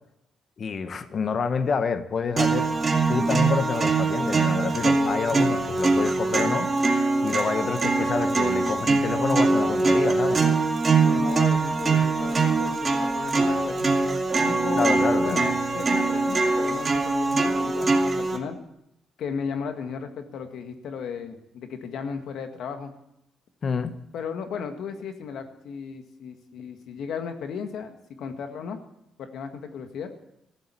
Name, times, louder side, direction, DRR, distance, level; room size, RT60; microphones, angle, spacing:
voice 1, 0.6-2.7 3.1-6.7 7.2-10.4 14.7-15.4 23.6-23.9, left 5 dB, 50° left, 10 dB, 1.2 m, -28 dB
sound 1, 2.4-18.4, right 3 dB, 30° right, 2.2 m, -23 dB
voice 2, 11.0-13.9 14.5-14.9 15.2-18.6 19.2-22.9 24.1-28.8 29.2-30.1, left 6 dB, 75° left, 6 dB, 1.8 m, -35 dB
14.5 x 7.7 x 9.1 m, 0.82 s
cardioid pair, 90°, 0 cm